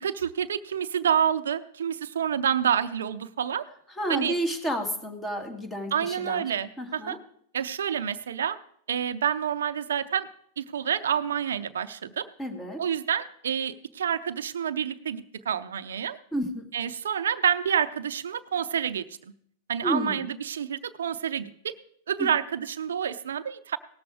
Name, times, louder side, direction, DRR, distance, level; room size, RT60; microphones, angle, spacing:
voice 1, 0.0-3.6 4.1-4.3 5.9-7.2 7.5-8.6 8.9-10.3 10.6-12.3 12.8-16.2 16.7-19.0 19.7-21.7 22.1-23.8, right 8 dB, 90° right, 10 dB, 0.5 m, -28 dB
voice 2, 4.0-6.5 6.8-7.2 12.4-12.8 16.3-16.6 19.8-20.3 22.2-22.3, equal, 15° left, 5 dB, 2.0 m, -31 dB
18.0 x 7.0 x 4.9 m, 0.65 s
hypercardioid pair, 120°, 0 cm